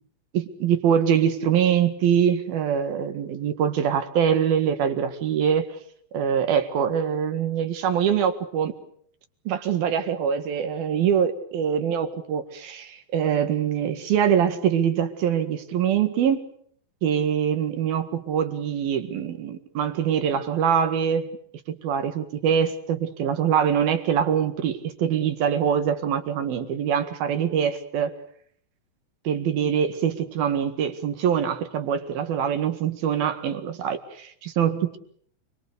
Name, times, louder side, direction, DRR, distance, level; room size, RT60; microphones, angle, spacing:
voice 1, 0.3-5.7 6.1-8.7 9.5-16.4 17.0-21.3 21.7-28.1 29.2-35.0, right 8 dB, 60° right, 8 dB, 3.1 m, -24 dB
28.5 x 23.5 x 6.8 m, 0.64 s
omnidirectional pair, 5.9 m